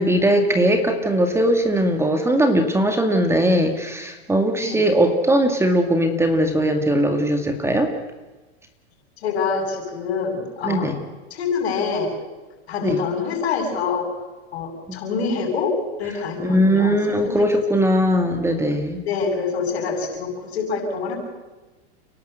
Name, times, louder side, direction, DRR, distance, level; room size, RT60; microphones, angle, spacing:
voice 1, 0.0-7.9 10.6-11.0 12.8-13.0 14.9-15.0 16.4-19.0, equal, 10° right, 6 dB, 2.1 m, -19 dB
voice 2, 9.2-10.9 11.3-12.1 12.7-14.1 14.5-17.4 19.0-21.2, left 5 dB, 80° left, 1 dB, 8.0 m, -26 dB
30.0 x 12.0 x 8.0 m, 1.2 s
supercardioid pair, 125°, 32 cm